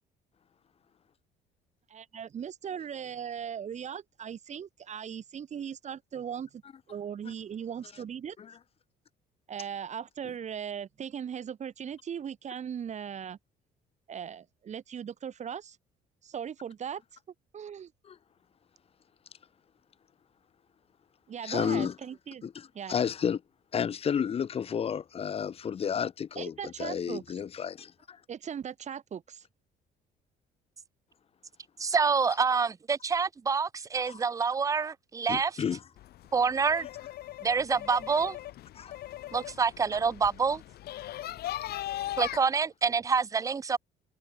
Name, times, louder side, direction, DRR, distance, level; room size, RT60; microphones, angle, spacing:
voice 1, 1.9-6.6 6.9-8.4 9.5-13.4 14.1-15.8 16.2-17.0 17.5-17.9 21.3-22.5 22.7-23.0 26.4-27.2 28.3-29.4, right 8 dB, 45° right, 2.5 m, -38 dB
voice 2, 21.4-21.9 22.4-23.4 23.7-28.2 34.1-34.2 35.3-35.8 38.8-39.0, left 7 dB, 35° left, 0.8 m, -32 dB
voice 3, 31.8-35.5 36.3-36.9 37.4-38.4 39.3-40.6 42.2-43.8, right 5 dB, 20° right, 0.4 m, -27 dB
sound 1, 36.0-42.4, left 14 dB, 70° left, 2.9 m, -39 dB
cardioid pair, 110°, 17 cm